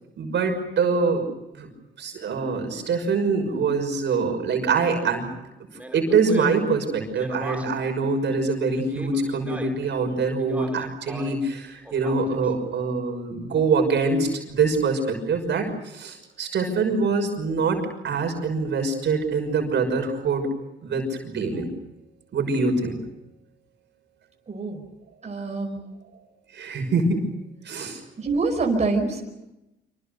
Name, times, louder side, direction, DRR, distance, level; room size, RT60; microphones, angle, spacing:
voice 1, 0.2-1.2 1.5-1.7 2.0-5.3 5.9-20.5 20.8-21.7 22.3-23.0 26.5-27.3 27.6-28.0, right 4 dB, 65° right, 5 dB, 6.1 m, -24 dB
Speech, 5.7-7.9 8.7-9.9 10.4-11.5 11.8-12.5, right 1 dB, 5° right, 3.2 m, -38 dB
voice 2, 24.5-24.8 25.2-25.8 28.2-29.3, right 3 dB, 35° right, 2 dB, 5.1 m, -25 dB
26.5 x 26.0 x 6.7 m, 0.92 s
cardioid pair, 90°, 20 cm